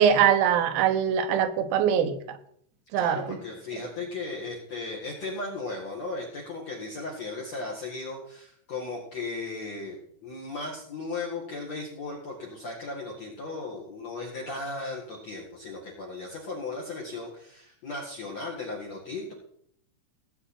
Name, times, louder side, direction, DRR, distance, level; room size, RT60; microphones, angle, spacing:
voice 1, 0.0-2.4 2.9-3.4, right 8 dB, 90° right, 9 dB, 3.8 m, -23 dB
voice 2, 3.0-10.0 10.2-19.3, left 3 dB, 60° left, -2 dB, 1.8 m, -36 dB
17.5 x 8.0 x 4.3 m, 0.67 s
omnidirectional pair, 6.0 m